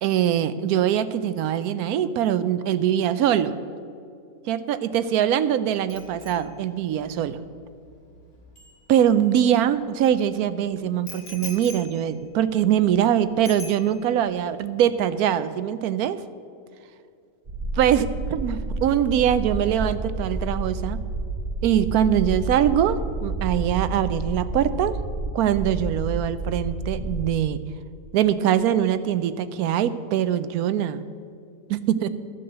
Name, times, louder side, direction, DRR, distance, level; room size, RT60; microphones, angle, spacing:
voice 1, 0.0-3.5 4.5-7.4 8.9-16.2 17.7-21.0 21.6-25.0 25.3-27.6 28.1-31.0 31.7-32.1, right 10 dB, 85° right, 13 dB, 1.1 m, -23 dB
Bicycle bell, 5.9-9.7 11.1-13.1 13.5-14.3 14.6-14.9, left 4 dB, 70° left, 2.8 m, -44 dB
sound 1, 17.5-27.2, right 2 dB, 40° right, 1.3 m, -30 dB
13.5 x 7.7 x 6.6 m, 2.4 s
omnidirectional pair, 1.5 m